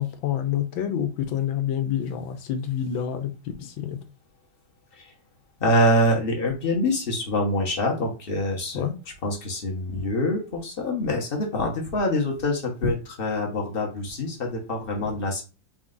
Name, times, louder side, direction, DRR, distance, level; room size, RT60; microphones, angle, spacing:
voice 1, 0.0-3.3 3.6-4.0 8.7-9.0, left 9 dB, 85° left, 8 dB, 1.5 m, -27 dB
voice 2, 5.6-8.8 9.2-15.4, left 1 dB, 40° left, 1 dB, 0.8 m, -25 dB
4.3 x 2.5 x 3.7 m, 0.32 s
omnidirectional pair, 2.1 m